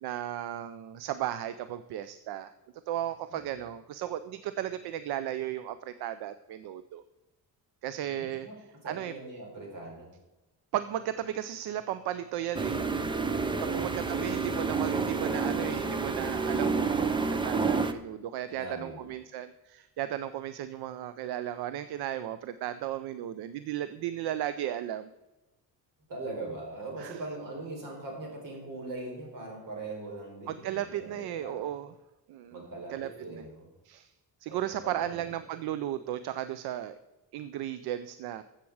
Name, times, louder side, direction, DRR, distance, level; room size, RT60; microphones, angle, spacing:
voice 1, 0.0-2.5 2.9-7.0 7.8-8.5 8.8-9.1 10.7-12.9 13.6-25.1 27.0-27.2 30.5-31.9 32.3-32.6 32.9-33.5 33.8-34.1 34.4-37.0 37.3-38.4, right 11 dB, 80° right, 13 dB, 0.6 m, -35 dB
voice 2, 3.3-3.6 8.0-8.6 8.8-10.1 13.6-14.4 18.5-19.1 26.1-31.6 32.5-33.7 34.5-35.2, right 2 dB, 55° right, 0 dB, 4.3 m, -41 dB
sound 1, 12.5-17.9, right 4 dB, 15° right, 0.4 m, -29 dB
14.5 x 7.5 x 4.8 m, 1.0 s
cardioid pair, 175°, 38 cm